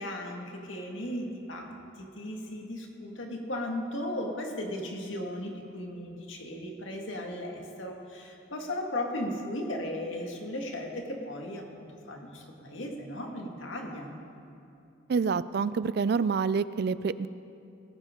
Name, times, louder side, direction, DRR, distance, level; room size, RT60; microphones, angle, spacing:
voice 1, 0.0-1.7 2.0-14.2, left 1 dB, 80° left, 1 dB, 1.9 m, -36 dB
voice 2, 15.1-17.3, right 5 dB, 55° right, 16 dB, 0.3 m, -27 dB
18.5 x 15.0 x 3.8 m, 2.6 s
head